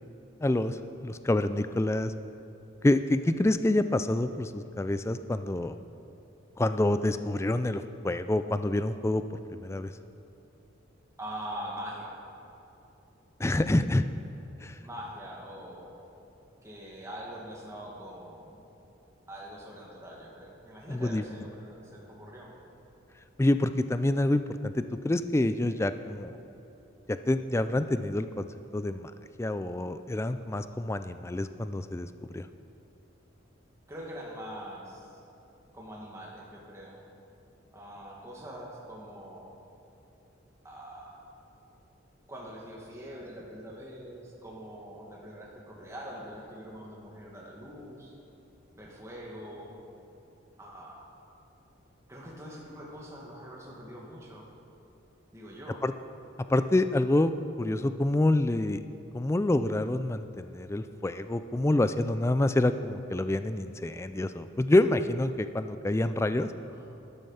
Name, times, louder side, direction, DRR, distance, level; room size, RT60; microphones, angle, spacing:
voice 1, 0.4-2.1 2.8-5.7 6.6-9.2 9.5-9.9 13.4-14.1 14.6-14.8 20.9-21.2 23.4-26.3 27.1-28.4 28.7-29.1 29.4-32.1 32.3-32.5 55.8-55.9 56.5-57.3 57.6-58.8 59.1-66.5, left 1 dB, 15° left, 11 dB, 0.3 m, -27 dB
voice 2, 11.2-12.1 14.8-15.9 16.6-18.6 19.3-22.5 33.9-35.1 35.7-37.0 37.7-39.5 40.6-41.3 42.3-48.1 48.8-49.8 50.6-51.1 52.1-54.5 55.3-55.8 66.7-66.9, equal, 15° right, -3 dB, 1.8 m, -43 dB
12.5 x 11.0 x 5.6 m, 2.8 s
head